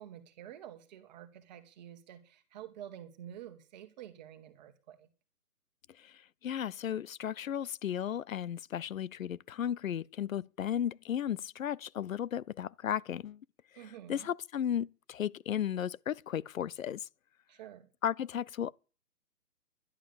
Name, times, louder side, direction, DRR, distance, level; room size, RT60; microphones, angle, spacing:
voice 1, 0.0-5.1 13.7-14.3 17.5-17.9, right 11 dB, 30° right, 1.6 m, -49 dB
voice 2, 6.4-13.4 13.8-17.1 18.0-18.7, left 9 dB, 60° left, 0.6 m, -35 dB
12.0 x 11.0 x 7.0 m
hypercardioid pair, 150°, 46 cm